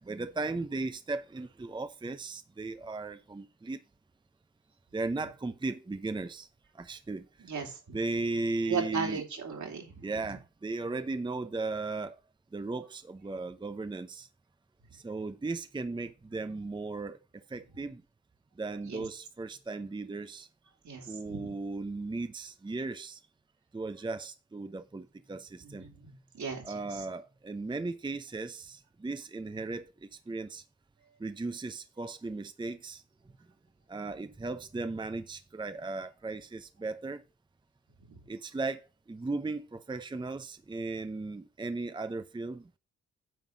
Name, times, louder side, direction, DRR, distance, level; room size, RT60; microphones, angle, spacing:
voice 1, 0.0-3.8 4.9-6.5 6.7-7.2 7.9-9.3 10.0-12.2 12.5-14.3 14.9-17.2 17.5-18.0 18.6-20.5 21.1-23.2 23.7-26.2 26.6-30.6 31.2-33.0 33.9-37.2 38.3-38.8 39.1-42.7, right 3 dB, 15° right, 0.7 m, -36 dB
voice 2, 7.4-8.0 8.7-10.0 18.8-19.1 20.8-21.5 25.6-25.9 26.3-26.6, right 5 dB, 60° right, 3.2 m, -35 dB
9.4 x 3.9 x 6.1 m
supercardioid pair, 55°, 32 cm